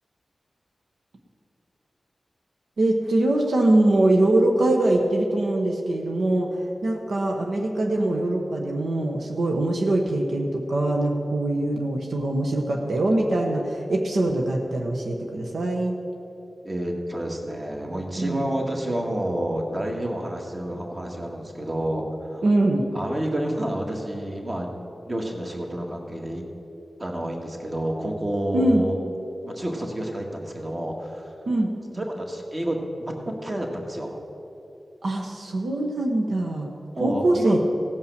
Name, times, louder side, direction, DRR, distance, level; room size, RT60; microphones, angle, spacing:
voice 1, 2.8-6.5 6.8-16.0 18.2-18.5 22.4-22.9 28.5-28.9 31.5-31.7 35.0-36.7 37.0-37.6, right 1 dB, 80° right, 0 dB, 1.1 m, -23 dB
voice 2, 16.6-22.0 22.3-22.4 22.9-24.8 25.1-26.4 27.0-29.0 29.4-31.4 31.9-34.1 36.9-37.6, right 1 dB, 35° right, 1 dB, 1.7 m, -29 dB
16.5 x 5.5 x 6.7 m, 2.8 s
wide cardioid pair, 65°, 0 cm